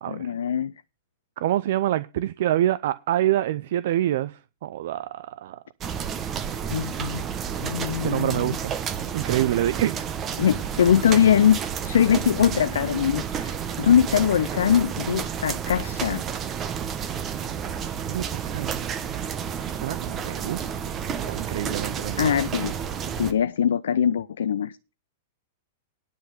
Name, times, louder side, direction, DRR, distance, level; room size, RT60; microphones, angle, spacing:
voice 1, 0.1-0.7 6.7-7.2 7.6-8.5 10.4-16.2 22.2-22.7 23.2-24.7, left 9 dB, 75° left, 0.4 m, -22 dB
voice 2, 1.4-5.6 8.0-8.8 9.1-10.1 18.0-18.9 19.7-20.6 21.2-22.4, right 13 dB, 65° right, 0.5 m, -26 dB
sound 1, 5.8-23.3, right 8 dB, 30° right, 1.3 m, -31 dB
10.5 x 5.8 x 6.9 m
hypercardioid pair, 105°, 0 cm